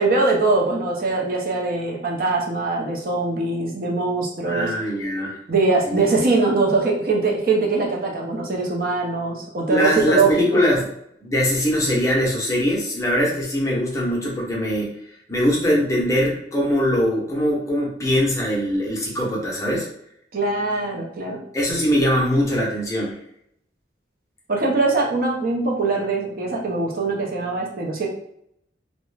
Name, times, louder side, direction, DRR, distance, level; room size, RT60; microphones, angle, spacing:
voice 1, 0.0-4.7 5.5-10.6 20.3-21.4 24.5-28.1, right 3 dB, 50° right, -1 dB, 0.5 m, -22 dB
voice 2, 4.4-5.4 5.9-6.0 9.7-10.8 11.2-15.0 15.3-19.9 21.5-23.2, equal, 15° left, -3 dB, 0.6 m, -22 dB
2.3 x 2.1 x 3.1 m, 0.74 s
head